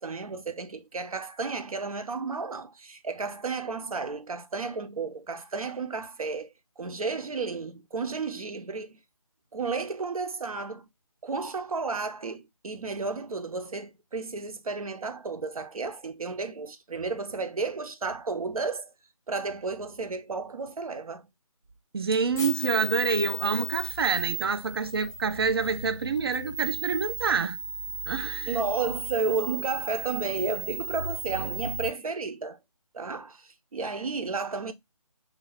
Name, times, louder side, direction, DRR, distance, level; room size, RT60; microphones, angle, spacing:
voice 1, 0.0-6.5 6.8-9.0 9.5-10.9 11.2-18.9 19.3-21.3 27.3-27.4 28.5-32.6 32.9-34.7, right 4 dB, 75° right, 0.8 m, -32 dB
voice 2, 21.9-27.6 28.1-28.6, right 5 dB, 40° right, 0.5 m, -27 dB
sound 1, 22.3-31.9, right 4 dB, 10° left, 0.7 m, -35 dB
3.3 x 2.3 x 3.8 m
figure-of-eight pair, 160°, 19 cm